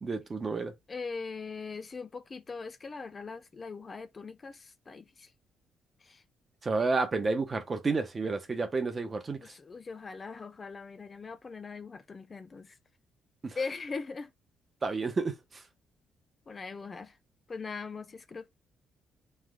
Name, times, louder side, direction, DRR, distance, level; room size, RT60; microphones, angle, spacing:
voice 1, 0.0-0.7 6.6-9.5 13.4-13.6 14.8-15.4, right 3 dB, 30° right, 1.0 m, -30 dB
voice 2, 0.9-5.3 6.0-6.2 9.4-12.8 13.6-14.3 16.5-17.1 17.5-18.5, left 4 dB, 35° left, 0.5 m, -40 dB
3.6 x 3.4 x 3.7 m
cardioid pair, 90°, 0 cm